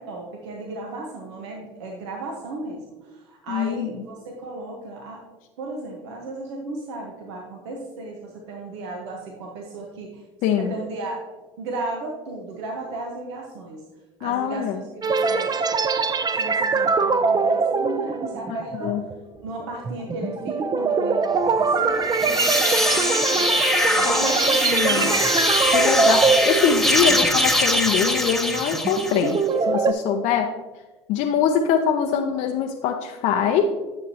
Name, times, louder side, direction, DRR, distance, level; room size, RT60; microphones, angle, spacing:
voice 1, 0.0-5.2 5.6-10.2 10.5-11.2 11.6-13.9 14.2-15.6 16.3-19.0 19.4-23.6 23.9-25.3, right 2 dB, 80° right, 0 dB, 1.1 m, -35 dB
voice 2, 3.5-3.9 10.4-10.7 14.2-14.8 18.5-19.0 24.0-25.2 25.7-30.6 31.1-33.7, left 7 dB, 60° left, 4 dB, 0.6 m, -23 dB
sound 1, 15.0-27.5 27.9-28.1 28.6-29.9, right 4 dB, 30° right, 0.5 m, -23 dB
sound 2, 22.0-29.4, left 1 dB, ahead, 0.9 m, -22 dB
9.7 x 6.6 x 2.8 m, 1.2 s
hypercardioid pair, 75°, 14 cm